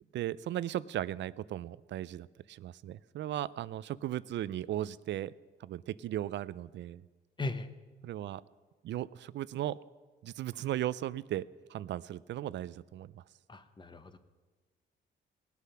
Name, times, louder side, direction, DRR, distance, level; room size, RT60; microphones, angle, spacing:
voice 1, 0.1-5.3 5.6-7.0 8.0-8.4 8.8-9.8 10.2-13.2, right 12 dB, 65° right, 19 dB, 0.5 m, -37 dB
voice 2, 13.5-14.2, left 2 dB, 25° left, 9 dB, 1.0 m, -38 dB
19.0 x 8.3 x 5.7 m, 1.4 s
cardioid pair, 90°, 20 cm